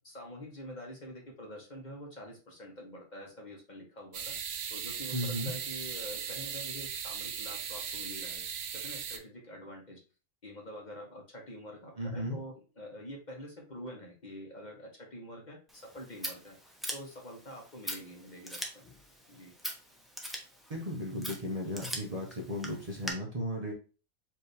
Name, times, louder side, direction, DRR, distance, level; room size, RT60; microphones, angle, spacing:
voice 1, 0.0-4.4 4.7-8.4 8.7-10.0 10.4-18.8 19.3-19.5, equal, 40° left, -1 dB, 1.1 m, -46 dB
sound 1, 4.1-9.2, right 7 dB, 65° right, 0.8 m, -38 dB
voice 2, 5.1-5.5 12.0-12.4 20.7-23.7, equal, 35° right, -1 dB, 0.8 m, -35 dB
Scissors, 15.7-23.1, equal, ahead, 0.4 m, -43 dB
4.6 x 2.7 x 3.3 m, 0.34 s
omnidirectional pair, 1.3 m